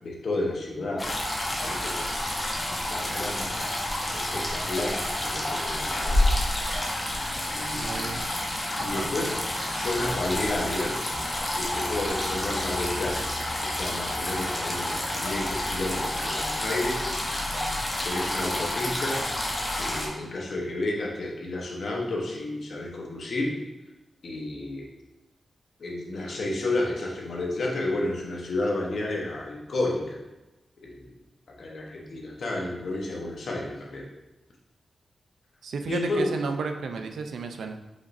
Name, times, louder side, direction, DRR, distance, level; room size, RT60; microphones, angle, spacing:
voice 1, 0.0-1.1 1.6-2.2 2.7-3.6 4.1-6.3 7.5-8.2 8.8-9.3 9.7-11.0 11.5-13.3 13.6-17.0 18.0-19.2 19.7-23.6 24.2-24.9 25.8-30.2 30.8-31.1 31.6-34.1 35.9-36.3, left 2 dB, 65° left, -2 dB, 1.0 m, -31 dB
sound 1, 1.0-20.1, left 1 dB, 25° left, 0.9 m, -29 dB
voice 2, 7.7-8.3 8.8-9.1 35.6-37.8, right 4 dB, 90° right, 6 dB, 0.4 m, -33 dB
5.0 x 4.0 x 2.6 m, 1.0 s
wide cardioid pair, 90°, 0 cm